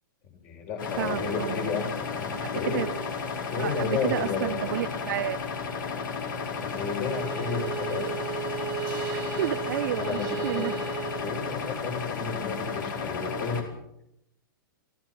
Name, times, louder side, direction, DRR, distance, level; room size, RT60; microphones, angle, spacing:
voice 1, 0.2-2.9 3.5-4.8 6.6-8.1 9.9-13.6, left 5 dB, 40° left, 3 dB, 6.8 m, -32 dB
sound 1, 0.8-13.6, left 5 dB, 65° left, 5.1 m, -33 dB
voice 2, 1.0-1.8 2.4-2.9 3.5-5.4 9.1-10.7, right 13 dB, 60° right, 15 dB, 0.7 m, -31 dB
Bowed string instrument, 7.0-12.0, right 9 dB, 30° right, 1.8 m, -36 dB
28.5 x 17.0 x 6.1 m, 0.80 s
hypercardioid pair, 125°, 11 cm